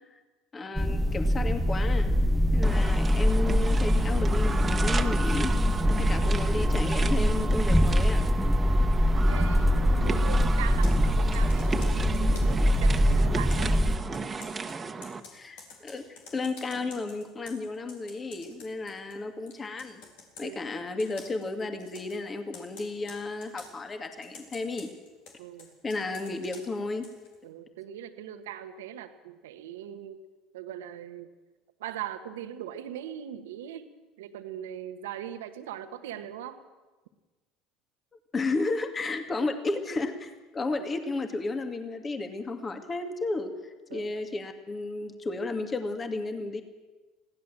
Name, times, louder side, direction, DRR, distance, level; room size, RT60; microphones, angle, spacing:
voice 1, 0.5-2.1 2.5-5.5 6.0-8.2 15.3-20.0 20.4-24.9 25.8-27.1 38.3-46.6, left 3 dB, 30° left, 7 dB, 2.3 m, -33 dB
sound 1, 0.8-14.0, equal, ahead, 1.2 m, -23 dB
sound 2, 2.6-15.2, right 4 dB, 25° right, 1.6 m, -34 dB
voice 2, 9.3-13.8 20.4-20.6 25.4-25.7 26.0-26.2 27.4-30.2 30.5-31.3 31.8-33.9 34.2-36.6 40.8-40.9 43.9-44.1, right 10 dB, 80° right, 9 dB, 1.4 m, -40 dB
Computer keyboard, 10.7-12.7 13.5-19.2 19.5-20.5 21.0-21.5 21.8-22.2 22.5-23.7 24.2-27.4, left 4 dB, 70° left, 4.0 m, -50 dB
21.5 x 16.0 x 7.5 m, 1.2 s
hypercardioid pair, 75°, 0 cm